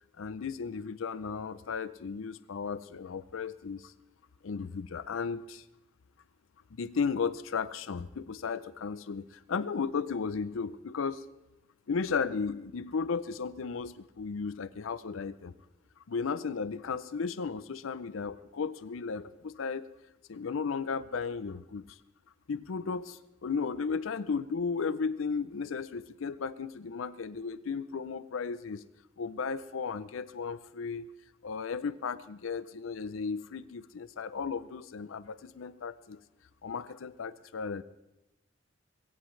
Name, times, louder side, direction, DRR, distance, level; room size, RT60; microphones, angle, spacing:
voice 1, 0.2-3.9 4.4-5.6 6.8-11.2 11.9-15.5 16.1-19.8 20.3-22.0 22.5-28.8 29.2-31.1 31.4-36.2 36.6-37.8, left 5 dB, 75° left, 15 dB, 0.5 m, -35 dB
21.5 x 16.5 x 3.2 m, 0.96 s
head